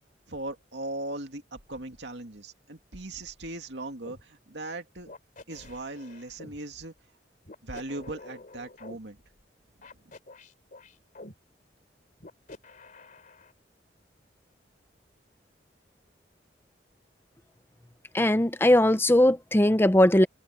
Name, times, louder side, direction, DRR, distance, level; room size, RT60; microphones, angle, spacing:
voice 1, 0.3-5.1 5.5-6.9 7.6-9.2 9.9-10.1, right 2 dB, 75° right, 2.5 m, -39 dB
sound 1, 4.0-4.2 5.1-6.6 7.4-9.0 9.8-11.3 12.2-13.5, left 2 dB, 50° left, 3.0 m, -47 dB
voice 2, 18.1-20.3, left 1 dB, 15° left, 0.7 m, -20 dB
head